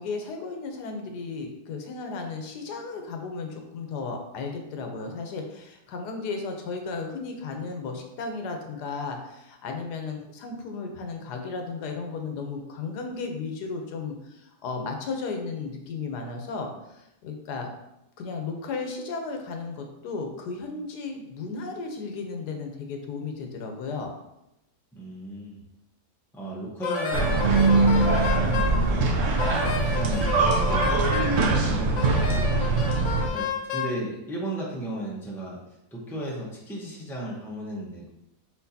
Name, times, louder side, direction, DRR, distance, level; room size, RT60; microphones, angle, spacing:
voice 1, 0.0-17.7 18.2-24.1, left 4 dB, 85° left, 4 dB, 1.3 m, -34 dB
voice 2, 24.9-25.6 26.3-32.7 32.9-35.6 35.9-38.1, right 1 dB, ahead, -4 dB, 0.6 m, -35 dB
Wind instrument woodwind instrument, 26.8-28.8 29.4-31.4 32.0-34.0, left 6 dB, 65° left, 0.7 m, -31 dB
sound 1, 27.1-33.3, right 3 dB, 65° right, 0.9 m, -22 dB
4.5 x 4.3 x 2.7 m, 0.87 s
omnidirectional pair, 1.7 m